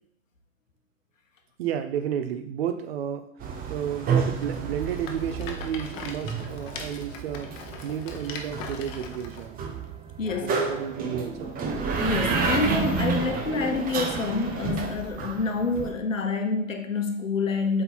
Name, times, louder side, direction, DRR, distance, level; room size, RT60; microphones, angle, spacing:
voice 1, 1.6-3.3 3.7-9.6 10.4-11.6, right 9 dB, 50° right, 9 dB, 0.8 m, -32 dB
sound 1, 3.4-15.9, right 5 dB, 20° right, 0.9 m, -30 dB
Rattle, 4.4-9.5, left 5 dB, 35° left, 0.9 m, -41 dB
voice 2, 10.2-10.7 12.0-17.8, left 4 dB, 80° left, 6 dB, 1.0 m, -27 dB
7.8 x 3.8 x 4.2 m, 0.72 s
figure-of-eight pair, 95°, 39 cm